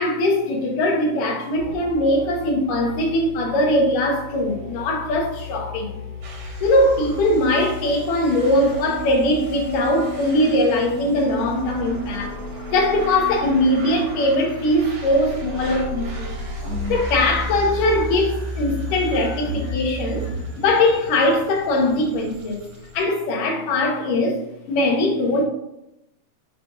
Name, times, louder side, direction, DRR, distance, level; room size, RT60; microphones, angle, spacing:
voice 1, 0.0-6.0 6.6-12.4 12.7-16.4 16.9-20.3 20.6-22.7 22.9-24.4 24.7-25.4, left 1 dB, 80° left, 2.8 m, -21 dB
sound 1, 1.6-21.0, left 1 dB, 35° left, 2.4 m, -34 dB
sound 2, 6.2-23.1, right 2 dB, 55° right, 2.4 m, -38 dB
9.8 x 6.3 x 2.5 m
omnidirectional pair, 3.8 m